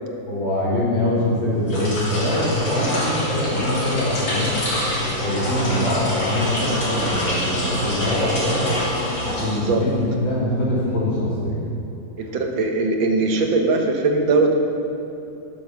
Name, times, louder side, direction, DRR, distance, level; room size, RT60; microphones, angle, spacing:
voice 1, 0.3-4.5 5.0-8.6 9.2-11.6, left 1 dB, 90° left, -7 dB, 4.0 m, -23 dB
sound 1, 1.6-10.0, left 1 dB, 65° left, 3.6 m, -25 dB
voice 2, 12.2-14.5, right 3 dB, 75° right, 3 dB, 1.9 m, -20 dB
11.0 x 7.7 x 6.1 m, 3.0 s
omnidirectional pair, 2.1 m